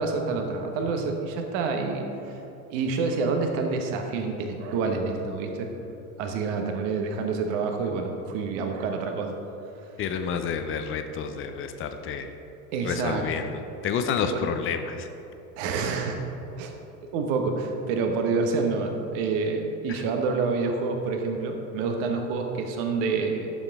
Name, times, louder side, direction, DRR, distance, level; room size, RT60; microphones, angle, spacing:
voice 1, 0.0-2.4 2.7-5.7 6.2-9.3 12.7-13.5 14.3-14.5 15.6-16.2 16.6-16.7 17.1-23.5, right 4 dB, 50° right, 4 dB, 1.2 m, -28 dB
voice 2, 10.0-12.3 12.8-15.1 19.9-20.0, left 6 dB, 30° left, 8 dB, 0.6 m, -29 dB
11.0 x 6.9 x 3.5 m, 2.9 s
figure-of-eight pair, 80°, 46 cm